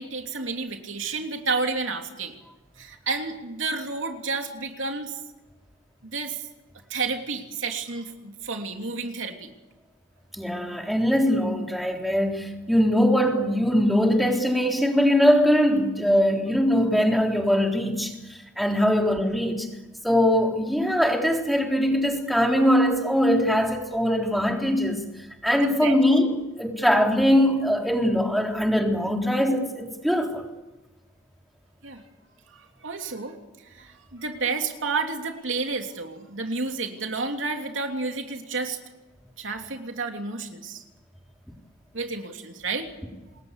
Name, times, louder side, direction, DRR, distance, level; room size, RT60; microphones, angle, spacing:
voice 1, 0.0-2.3 2.8-5.2 6.0-6.4 6.9-9.5 18.8-19.0 25.5-26.0 31.8-32.0 32.5-33.4 33.7-38.8 39.4-40.8 41.9-43.1, right 4 dB, 75° right, 3.1 m, -31 dB
voice 2, 10.3-19.7 20.0-25.0 25.4-30.4, equal, ahead, 3.6 m, -22 dB
27.5 x 21.0 x 8.3 m
head